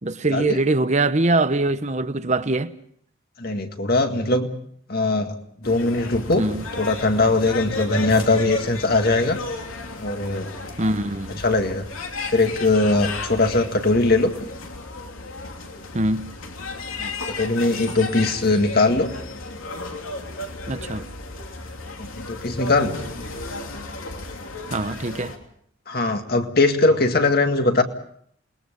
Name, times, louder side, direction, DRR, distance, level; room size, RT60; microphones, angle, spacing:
voice 1, 0.0-2.7 6.4-6.6 8.2-8.3 10.8-11.4 15.9-16.3 20.7-21.1 24.7-25.3, right 2 dB, 35° right, 1.0 m, -23 dB
voice 2, 3.4-4.5 4.9-6.4 6.8-9.4 10.0-10.5 11.4-11.8 12.3-14.3 17.0-19.1 22.0-23.0 25.9-27.8, left 2 dB, 50° left, 2.0 m, -21 dB
sound 1, 5.6-25.4, left 2 dB, 85° left, 3.0 m, -34 dB
28.5 x 21.0 x 5.3 m
head